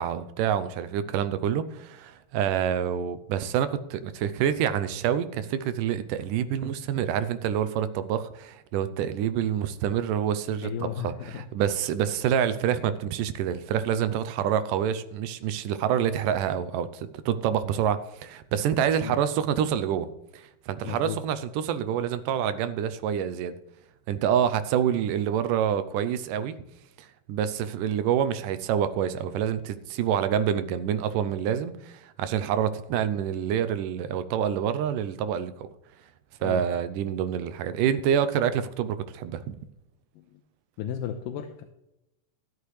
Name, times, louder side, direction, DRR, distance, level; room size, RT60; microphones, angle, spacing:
voice 1, 0.0-20.1 20.3-23.6 24.1-26.6 27.0-35.7 36.4-39.6, right 9 dB, 85° right, 12 dB, 2.2 m, -27 dB
voice 2, 10.6-11.1 19.0-19.2 20.8-21.2 36.4-36.6 40.3-40.4 40.8-41.6, left 9 dB, 85° left, 5 dB, 2.5 m, -33 dB
13.0 x 11.5 x 3.3 m, 0.88 s
omnidirectional pair, 3.8 m